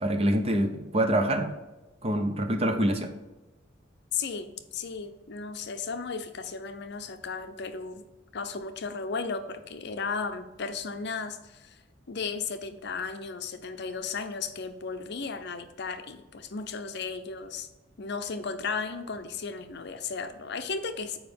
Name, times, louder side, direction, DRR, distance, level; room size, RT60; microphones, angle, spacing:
voice 1, 0.0-1.5 2.0-3.1, right 1 dB, 30° right, 5 dB, 0.8 m, -25 dB
voice 2, 4.1-8.0 8.3-11.8 12.1-17.7 18.0-21.2, left 5 dB, 60° left, 9 dB, 0.6 m, -35 dB
7.2 x 4.8 x 5.2 m, 1.1 s
head